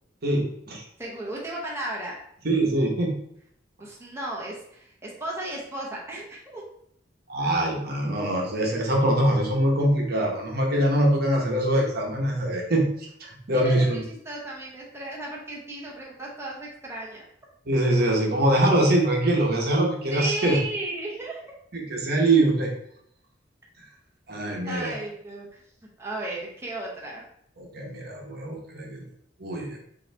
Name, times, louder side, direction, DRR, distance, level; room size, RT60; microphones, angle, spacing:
voice 1, 0.2-0.8 2.4-3.1 7.3-12.8 13.2-14.0 17.7-20.6 21.7-22.7 24.3-24.9 27.6-29.0 29.4-29.8, right 1 dB, 55° right, -1 dB, 1.0 m, -23 dB
voice 2, 1.0-2.2 3.8-6.6 11.5-11.6 13.5-17.3 20.1-21.4 24.7-25.6 26.0-27.2, right 1 dB, 15° right, -4 dB, 0.9 m, -35 dB
5.3 x 2.9 x 3.4 m, 0.69 s
head